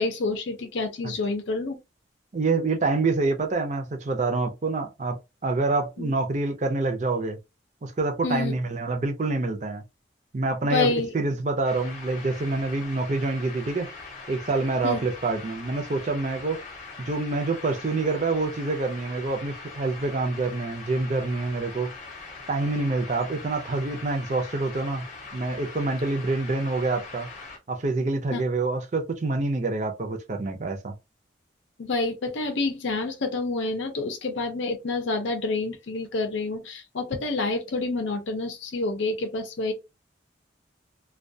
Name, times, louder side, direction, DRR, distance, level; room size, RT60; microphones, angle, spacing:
voice 1, 0.0-1.8 6.0-6.1 8.2-8.5 10.7-11.1 14.8-15.0 28.3-28.4 31.8-39.7, left 3 dB, 75° left, 0.5 m, -28 dB
voice 2, 2.3-7.4 7.8-9.8 10.3-13.9 14.3-16.6 17.0-21.9 22.5-27.3 27.7-30.9, right 3 dB, 40° right, 0.5 m, -27 dB
sound 1, 11.6-27.6, left 4 dB, 40° left, 0.7 m, -42 dB
2.2 x 2.2 x 2.6 m
head